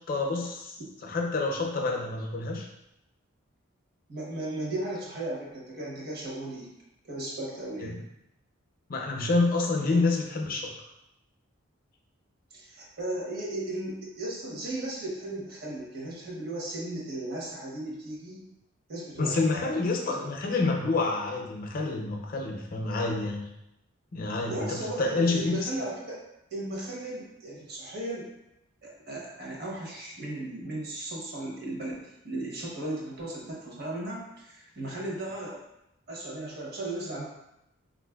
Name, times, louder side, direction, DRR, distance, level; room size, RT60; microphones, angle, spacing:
voice 1, 0.1-2.7 7.8-8.0 8.9-10.7 19.2-23.4 24.1-25.7, left 3 dB, 45° left, 1 dB, 0.5 m, -28 dB
voice 2, 4.1-6.7 7.0-7.9 9.8-10.0 12.5-18.5 18.9-20.3 24.5-26.2 26.5-28.3 28.8-35.6 36.1-37.2, right 1 dB, 50° right, -3 dB, 0.8 m, -36 dB
3.9 x 2.4 x 2.3 m, 0.86 s
head